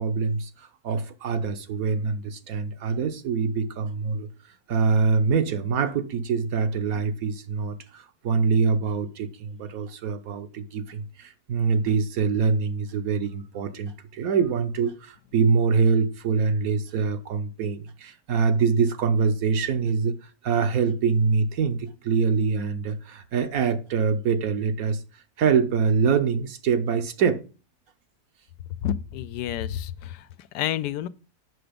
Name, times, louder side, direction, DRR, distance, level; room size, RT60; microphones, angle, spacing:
voice 1, 0.0-4.3 4.7-25.0 25.4-27.4, right 5 dB, 65° right, 1.2 m, -24 dB
voice 2, 28.8-30.2 30.5-31.1, left 11 dB, 80° left, 1.2 m, -29 dB
7.9 x 5.9 x 5.1 m
omnidirectional pair, 1.8 m